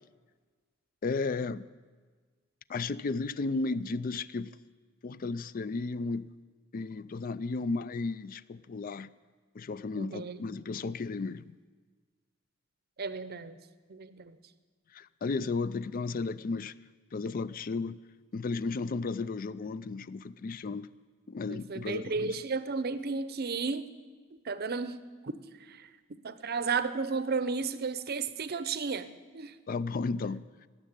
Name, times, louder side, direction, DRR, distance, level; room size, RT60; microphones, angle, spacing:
voice 1, 1.0-1.7 2.7-4.5 5.0-6.3 6.7-9.1 9.5-11.6 14.9-16.7 17.1-18.0 18.3-20.9 21.3-22.4 29.7-30.4, left 3 dB, 40° left, 0.4 m, -34 dB
voice 2, 10.0-10.5 13.0-13.6 13.9-14.4 21.5-23.9 24.4-25.3 25.6-25.9 26.2-29.5, right 4 dB, 50° right, 0.6 m, -33 dB
18.5 x 7.4 x 8.8 m
head